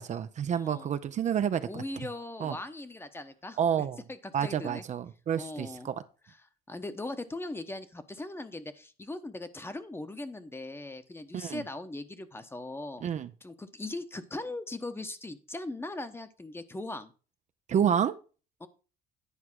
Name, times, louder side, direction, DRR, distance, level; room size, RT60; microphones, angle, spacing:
voice 1, 0.0-1.8 2.4-2.6 3.6-4.0 4.3-5.9 11.3-11.6 13.0-13.3 17.7-18.2, right 8 dB, 45° right, 0.6 m, -29 dB
voice 2, 0.5-0.9 1.6-4.8 5.4-5.9 6.2-6.4 6.7-13.1 13.4-17.1 18.6-18.7, left 2 dB, 15° left, 1.0 m, -39 dB
10.0 x 4.6 x 6.1 m
cardioid pair, 110°, 17 cm